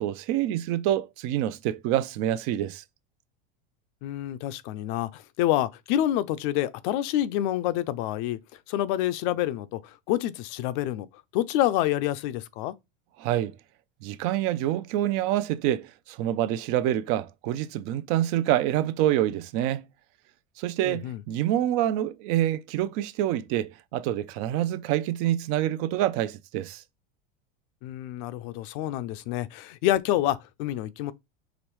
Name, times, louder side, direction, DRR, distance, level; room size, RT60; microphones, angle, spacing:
voice 1, 0.0-2.8 13.2-13.6 14.0-19.8 20.6-26.8, right 12 dB, 50° right, 0.5 m, -26 dB
voice 2, 4.0-8.4 8.7-11.1 11.3-12.7 20.8-21.2 27.8-31.1, left 13 dB, 60° left, 0.5 m, -27 dB
5.0 x 3.1 x 3.0 m
supercardioid pair, 120°, 29 cm